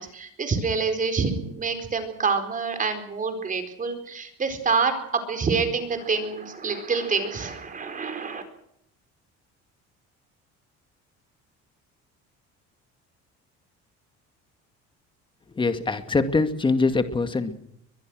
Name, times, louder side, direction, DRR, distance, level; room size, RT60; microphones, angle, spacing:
voice 1, 0.0-8.4, right 5 dB, 25° right, 8 dB, 4.4 m, -27 dB
voice 2, 15.6-17.5, left 3 dB, 15° left, 8 dB, 2.2 m, -23 dB
23.0 x 22.0 x 6.4 m, 0.73 s
cardioid pair, 145°, 29 cm